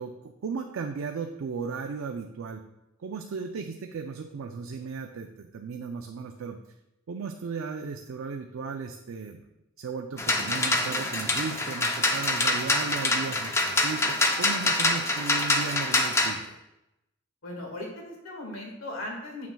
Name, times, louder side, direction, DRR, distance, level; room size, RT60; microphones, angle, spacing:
voice 1, 0.0-2.6 3.0-6.6 7.1-9.4 9.8-16.6, right 5 dB, 75° right, 5 dB, 0.4 m, -36 dB
sound 1, 10.2-16.3, left 2 dB, 15° left, 0.5 m, -25 dB
voice 2, 17.4-19.5, left 1 dB, 90° left, 0 dB, 1.7 m, -38 dB
7.4 x 5.9 x 2.2 m, 0.90 s
head